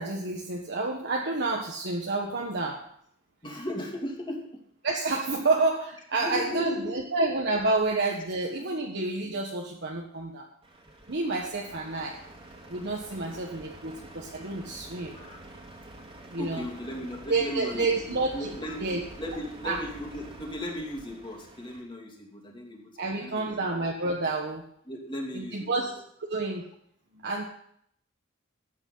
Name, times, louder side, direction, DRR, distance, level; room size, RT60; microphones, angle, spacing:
voice 1, 0.0-2.8 4.8-10.5 11.1-12.2 12.7-15.2 16.3-16.6 17.3-18.5 18.8-19.0 19.6-19.8 23.0-24.6 25.3-25.9 26.3-26.7 27.1-27.4, right 3 dB, 55° right, 0 dB, 1.5 m, -29 dB
voice 2, 3.4-4.5 5.3-5.5 6.2-7.1 8.6-8.8 15.1-15.4 16.4-18.8 19.2-23.5 24.9-25.9, left 1 dB, 25° left, 0 dB, 2.7 m, -37 dB
Truck, 10.6-21.8, right 1 dB, 25° right, 2.6 m, -47 dB
14.0 x 9.3 x 5.6 m, 0.68 s
head